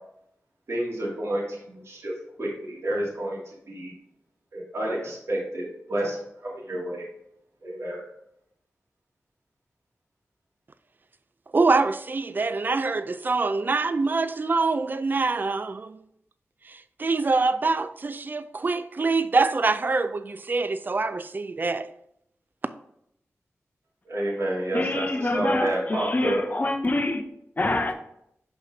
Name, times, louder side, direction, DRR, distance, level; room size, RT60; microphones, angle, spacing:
voice 1, 0.7-2.1 2.4-3.4 3.7-3.9 4.5-7.1 7.6-8.0 24.1-26.4, right 1 dB, 65° right, 2.4 m, -29 dB
voice 2, 11.5-16.0 17.0-21.9, right 3 dB, 40° right, 0.4 m, -24 dB
voice 3, 24.7-27.2 27.6-28.0, left 2 dB, 35° left, 0.8 m, -26 dB
6.2 x 5.3 x 3.4 m
wide cardioid pair, 70°, 5 cm